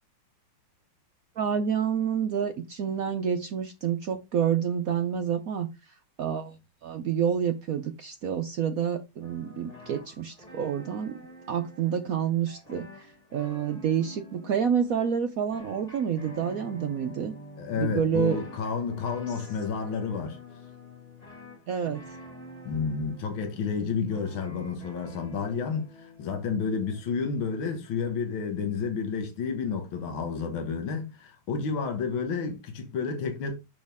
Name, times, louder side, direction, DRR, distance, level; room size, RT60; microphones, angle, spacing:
voice 1, 1.4-11.2 11.5-17.3 17.7-18.4 21.7-22.0, right 8 dB, 65° right, 0.8 m, -28 dB
sound 1, 9.2-28.5, left 1 dB, 20° left, 2.1 m, -48 dB
voice 2, 17.6-20.4 22.6-33.5, left 5 dB, 75° left, 2.1 m, -30 dB
6.4 x 6.0 x 3.5 m
omnidirectional pair, 2.2 m